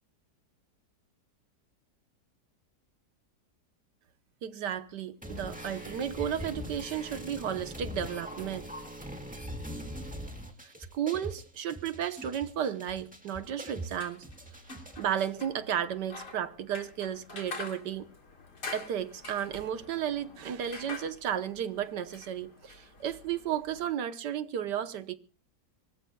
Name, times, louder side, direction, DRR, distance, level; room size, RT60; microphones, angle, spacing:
voice 1, 4.4-8.7 10.0-10.1 10.6-14.2 15.0-18.1 18.7-25.1, right 9 dB, 85° right, 1.7 m, -33 dB
sound 1, 5.2-15.2, equal, 5° right, 1.9 m, -42 dB
sound 2, 13.8-23.9, left 3 dB, 80° left, 3.8 m, -46 dB
25.5 x 20.0 x 2.3 m
omnidirectional pair, 1.8 m